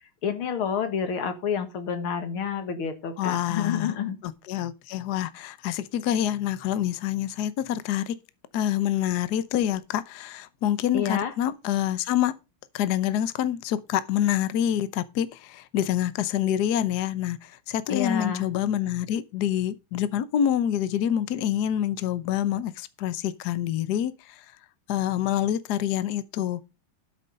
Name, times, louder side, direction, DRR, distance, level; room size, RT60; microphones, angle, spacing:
voice 1, 0.2-4.2 10.9-11.3 17.9-18.4, left 7 dB, 80° left, 2.5 m, -28 dB
voice 2, 3.2-3.9 4.2-8.2 8.5-12.4 12.7-24.4 24.9-26.6, left 11 dB, 60° left, 1.1 m, -27 dB
12.5 x 6.4 x 5.2 m
omnidirectional pair, 2.3 m